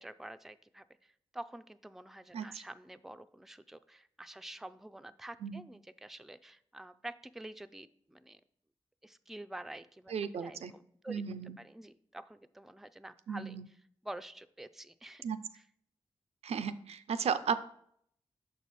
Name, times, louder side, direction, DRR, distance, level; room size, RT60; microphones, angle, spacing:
voice 1, 0.0-8.4 9.0-11.2 11.6-13.8 14.0-15.3 15.5-15.6, right 1 dB, 5° right, 10 dB, 0.3 m, -48 dB
voice 2, 10.1-10.7 11.1-11.6 13.3-13.7 15.2-15.4 16.4-17.6, right 6 dB, 80° right, 11 dB, 0.4 m, -34 dB
6.4 x 4.6 x 4.1 m, 0.67 s
cardioid pair, 50°, 11 cm